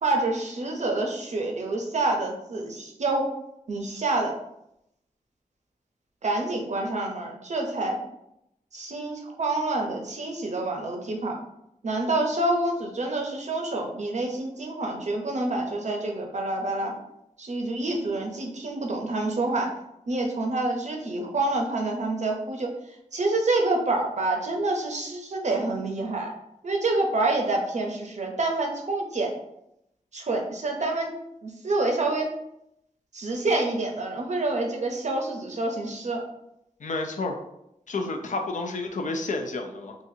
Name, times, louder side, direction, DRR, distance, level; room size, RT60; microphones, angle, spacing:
voice 1, 0.0-3.3 3.7-4.4 6.2-8.0 8.7-11.3 11.8-16.9 17.4-19.7 20.1-22.7 23.1-26.3 26.6-29.3 30.1-31.1 31.4-32.3 33.1-36.2, right 2 dB, 50° right, 1 dB, 0.6 m, -27 dB
voice 2, 36.8-37.4 37.9-40.0, left 3 dB, 55° left, 3 dB, 0.5 m, -30 dB
4.0 x 2.5 x 2.7 m, 0.81 s
wide cardioid pair, 120°, 15 cm